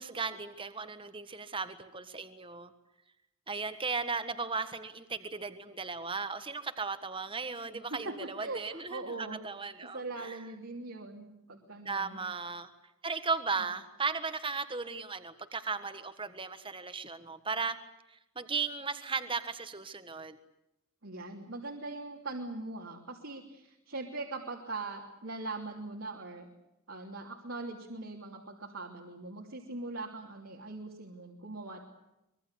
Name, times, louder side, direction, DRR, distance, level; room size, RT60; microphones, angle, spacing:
voice 1, 0.0-2.7 3.5-10.4 11.8-12.7 13.0-17.8 18.1-20.4, right 4 dB, 25° right, 10 dB, 1.6 m, -36 dB
voice 2, 7.9-9.4 9.9-12.2 21.0-26.5 26.9-31.8, right 2 dB, 70° right, 0 dB, 3.2 m, -41 dB
25.0 x 22.5 x 8.4 m, 0.87 s
head